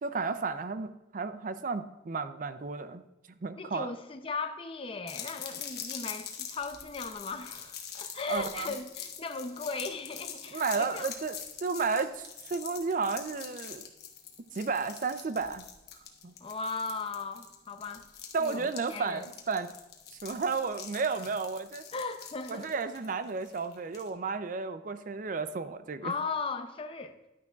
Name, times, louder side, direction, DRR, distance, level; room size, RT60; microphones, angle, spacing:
voice 1, 0.0-3.0 3.4-3.9 8.3-8.8 10.5-13.9 14.5-15.7 16.2-16.3 18.3-19.7 20.1-21.8 22.5-26.1, right 4 dB, 50° right, 12 dB, 0.4 m, -33 dB
voice 2, 3.6-11.1 16.4-18.0 18.4-19.3 21.9-22.7 26.0-27.3, left 4 dB, 30° left, 7 dB, 0.5 m, -37 dB
sound 1, 5.1-24.1, left 8 dB, 60° left, 1.1 m, -44 dB
11.0 x 9.4 x 2.4 m, 1.0 s
head